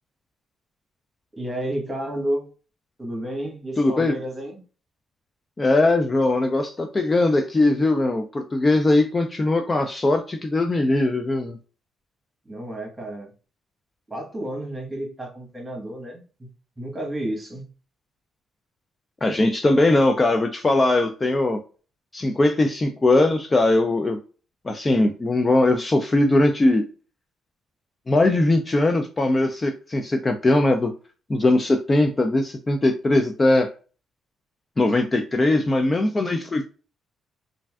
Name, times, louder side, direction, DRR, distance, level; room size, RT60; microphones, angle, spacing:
voice 1, 1.3-2.5 3.0-4.6 12.4-13.3 14.1-16.5 16.8-17.7, right 1 dB, 15° right, 0 dB, 1.2 m, -31 dB
voice 2, 3.8-4.1 5.6-11.6 19.2-21.6 22.1-24.2 24.6-26.8 28.1-30.9 31.3-33.7 34.8-36.6, left 2 dB, 25° left, 5 dB, 0.3 m, -20 dB
3.2 x 2.5 x 2.3 m, 0.36 s
cardioid pair, 90°, 0 cm